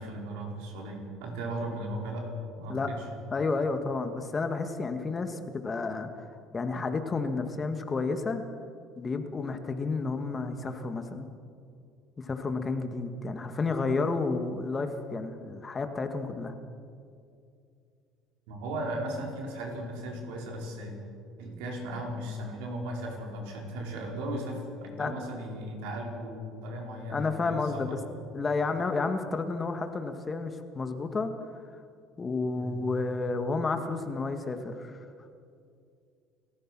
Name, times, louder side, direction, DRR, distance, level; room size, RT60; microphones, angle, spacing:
voice 1, 0.0-2.3 2.6-3.0 18.5-21.0 21.4-28.0 32.6-32.8, right 1 dB, 85° right, 0 dB, 4.9 m, -36 dB
voice 2, 3.3-6.1 6.5-8.4 9.0-11.3 12.2-16.5 25.0-25.2 27.1-28.0 28.3-31.3 32.2-35.0, left 3 dB, 25° left, 7 dB, 1.8 m, -31 dB
30.0 x 14.0 x 6.2 m, 2.4 s
supercardioid pair, 105°, 0 cm